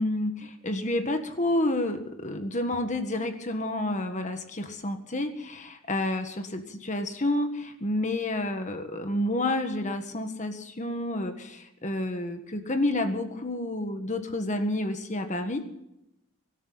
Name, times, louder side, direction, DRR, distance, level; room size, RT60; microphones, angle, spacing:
voice 1, 0.0-15.7, left 1 dB, 35° left, 7 dB, 1.5 m, -29 dB
24.0 x 12.5 x 4.1 m, 0.83 s
head